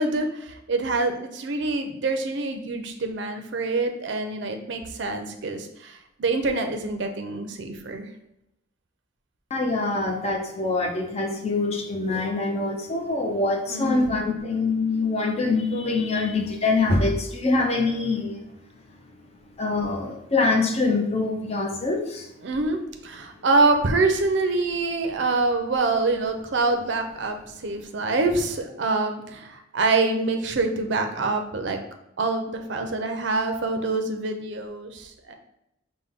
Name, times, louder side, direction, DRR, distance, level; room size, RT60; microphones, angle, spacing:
voice 1, 0.0-8.1 13.7-14.1 22.4-27.4 27.6-31.8 32.2-35.3, right 3 dB, 60° right, 6 dB, 0.5 m, -25 dB
voice 2, 9.5-18.4 19.6-22.3, left 3 dB, 30° left, 2 dB, 0.6 m, -24 dB
5.7 x 2.2 x 3.5 m, 0.83 s
head